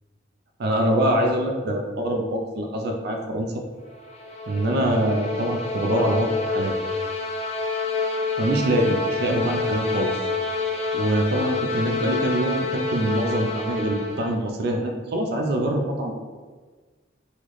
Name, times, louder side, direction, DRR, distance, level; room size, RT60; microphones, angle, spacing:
voice 1, 0.6-3.5 4.5-6.7 8.4-10.2 10.9-16.1, right 1 dB, 55° right, 2 dB, 0.4 m, -24 dB
sound 1, 3.9-14.5, left 3 dB, 35° left, 0.4 m, -28 dB
3.8 x 2.0 x 3.1 m, 1.4 s
head